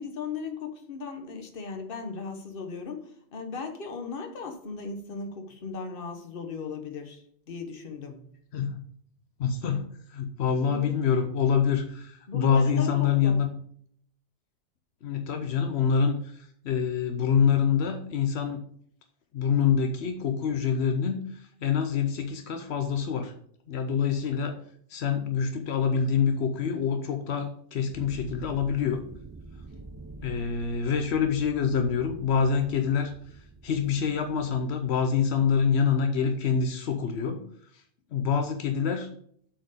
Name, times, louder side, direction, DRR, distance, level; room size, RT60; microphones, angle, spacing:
voice 1, 0.0-8.3 10.6-11.1 12.3-13.4, left 4 dB, 60° left, 5 dB, 1.3 m, -37 dB
voice 2, 9.4-13.5 15.0-18.6 19.3-23.3 23.7-24.6 24.9-29.0 30.2-33.1 33.6-37.4 37.7-37.8 38.1-39.1, left 6 dB, 85° left, 6 dB, 1.0 m, -26 dB
sound 1, 27.9-35.7, right 2 dB, 25° right, 0.4 m, -46 dB
7.6 x 4.5 x 4.9 m, 0.63 s
omnidirectional pair, 1.1 m